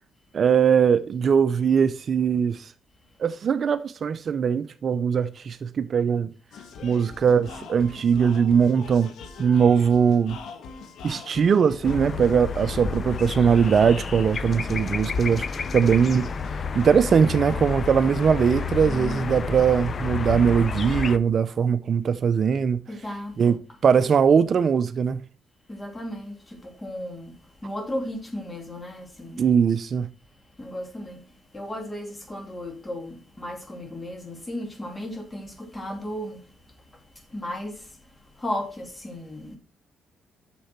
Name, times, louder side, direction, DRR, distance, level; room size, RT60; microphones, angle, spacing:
voice 1, 0.3-2.7 3.2-6.3 6.8-9.1 9.4-10.4 11.0-16.3 16.7-22.8 23.4-25.2 29.4-30.1, right 7 dB, 50° right, 0.5 m, -21 dB
sound 1, 6.5-19.0, left 5 dB, 75° left, 1.4 m, -43 dB
sound 2, 11.8-21.2, left 5 dB, 45° left, 0.6 m, -30 dB
voice 2, 18.8-19.4 22.9-23.6 25.7-27.3 27.6-29.5 30.6-31.2 31.5-36.4 37.3-37.9 38.4-39.6, left 1 dB, 20° left, 2.7 m, -35 dB
8.4 x 6.6 x 4.4 m
cardioid pair, 90°, 0 cm